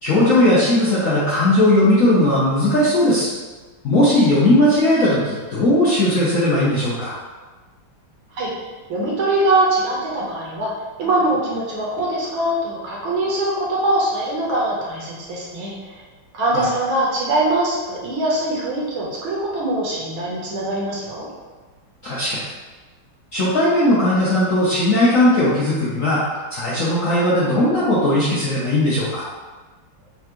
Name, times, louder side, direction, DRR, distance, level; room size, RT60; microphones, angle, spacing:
voice 1, 0.0-3.3 3.8-7.1 16.5-16.6 22.0-22.4 23.3-26.2 26.5-29.2, left 1 dB, 60° left, -9 dB, 0.8 m, -17 dB
voice 2, 8.9-10.7 11.0-15.9 16.3-21.3, right 1 dB, 70° right, -4 dB, 1.7 m, -22 dB
5.6 x 2.4 x 3.0 m, 1.3 s
omnidirectional pair, 2.3 m